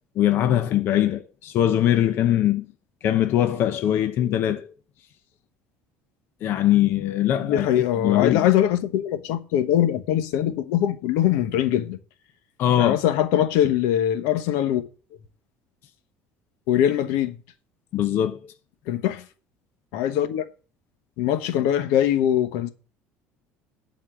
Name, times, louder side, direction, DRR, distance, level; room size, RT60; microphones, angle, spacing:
voice 1, 0.2-2.7 3.0-4.7 6.4-8.5 12.6-13.0 17.9-18.4, left 11 dB, 50° left, 0.8 m, -22 dB
voice 2, 7.4-12.0 12.7-14.8 16.7-17.4 18.9-19.2 19.9-20.4 21.2-22.7, left 11 dB, 80° left, 1.1 m, -22 dB
11.5 x 4.4 x 7.3 m
cardioid pair, 150°, 5 cm